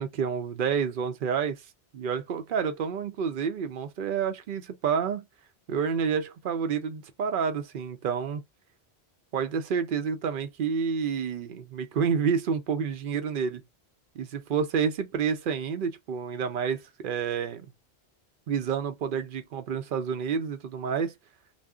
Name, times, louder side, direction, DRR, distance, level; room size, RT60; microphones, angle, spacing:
voice 1, 0.0-1.6 1.9-5.2 5.7-8.4 9.3-13.6 14.2-17.7 18.5-21.1, right 6 dB, 60° right, 0.7 m, -29 dB
2.5 x 2.0 x 3.5 m
omnidirectional pair, 1.1 m